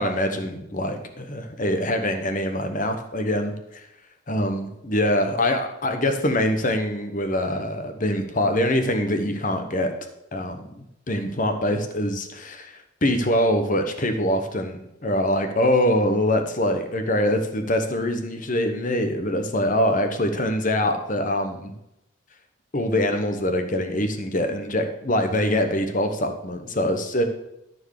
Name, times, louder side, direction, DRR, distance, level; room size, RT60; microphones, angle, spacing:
voice 1, 0.0-3.9 4.3-9.9 10.3-21.7 22.7-27.2, left 1 dB, 40° left, 7 dB, 1.1 m, -24 dB
13.0 x 4.7 x 6.5 m, 0.84 s
head